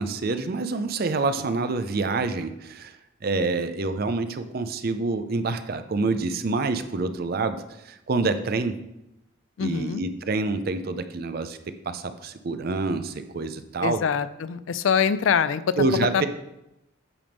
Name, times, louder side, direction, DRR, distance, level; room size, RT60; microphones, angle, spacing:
voice 1, 0.0-8.8 9.6-11.6 11.9-14.0 15.8-16.3, right 3 dB, 50° right, 10 dB, 0.5 m, -27 dB
voice 2, 9.6-10.0 13.8-15.7 16.1-16.3, left 7 dB, 75° left, 15 dB, 0.4 m, -24 dB
8.6 x 3.5 x 5.2 m, 0.88 s
head